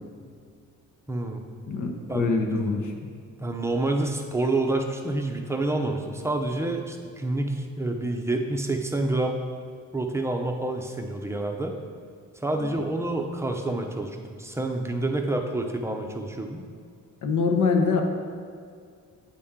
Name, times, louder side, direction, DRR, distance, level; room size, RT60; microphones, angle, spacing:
voice 1, 1.1-1.4 2.1-2.4 3.4-9.4 9.9-11.7 12.4-16.6, right 2 dB, 10° right, 3 dB, 0.6 m, -28 dB
voice 2, 1.7-3.0 12.6-12.7 17.2-18.0, left 4 dB, 65° left, 3 dB, 0.9 m, -24 dB
8.6 x 4.2 x 3.6 m, 2.1 s
cardioid pair, 100°, 32 cm